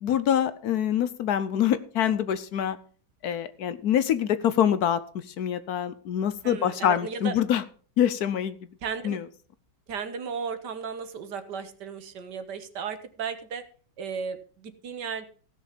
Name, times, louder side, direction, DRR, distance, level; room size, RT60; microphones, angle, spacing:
voice 1, 0.0-2.8 3.2-7.6 8.0-8.6 9.0-9.2, left 9 dB, 70° left, 13 dB, 1.1 m, -25 dB
voice 2, 6.4-7.4 8.8-9.2 9.9-13.6 14.0-15.2, right 6 dB, 70° right, 9 dB, 1.8 m, -35 dB
16.0 x 6.6 x 5.2 m, 0.41 s
omnidirectional pair, 1.9 m